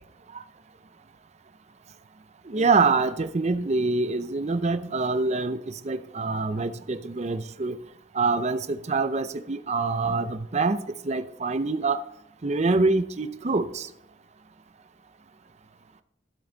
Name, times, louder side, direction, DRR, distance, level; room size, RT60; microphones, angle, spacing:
voice 1, 2.5-5.6 5.8-7.7 8.1-12.0 12.4-13.9, right 3 dB, 40° right, 10 dB, 0.6 m, -25 dB
13.0 x 7.7 x 4.0 m, 0.79 s
head